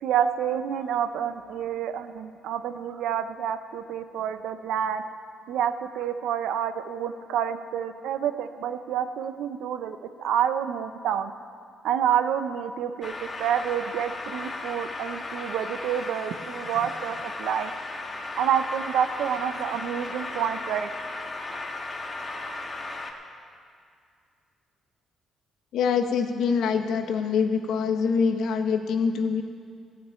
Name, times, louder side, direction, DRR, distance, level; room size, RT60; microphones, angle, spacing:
voice 1, 0.0-5.0 5.5-11.3 11.8-13.1 13.4-17.7 18.4-20.9 22.4-22.6, right 9 dB, 85° right, 10 dB, 0.6 m, -28 dB
sound 1, 13.0-23.1, left 2 dB, 30° left, 1.3 m, -35 dB
voice 2, 25.7-29.4, left 6 dB, 80° left, 6 dB, 0.9 m, -24 dB
15.0 x 6.0 x 8.8 m, 2.3 s
cardioid pair, 90°, 0 cm